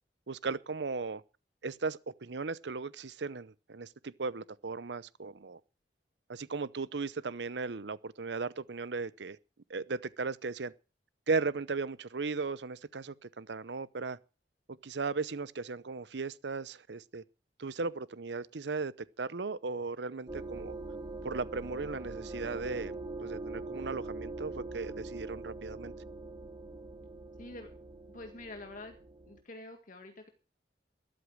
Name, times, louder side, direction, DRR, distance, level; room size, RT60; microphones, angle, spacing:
voice 1, 0.3-1.2 1.6-5.6 6.3-9.4 9.7-10.7 11.3-14.2 14.8-17.2 17.6-20.7 21.2-22.9 23.2-25.9, right 4 dB, 70° right, 0.7 m, -36 dB
sound 1, 20.3-29.4, right 2 dB, 25° right, 2.1 m, -43 dB
voice 2, 27.4-27.7 28.1-29.0 29.3-30.3, left 2 dB, 50° left, 1.9 m, -46 dB
13.0 x 11.5 x 6.3 m
head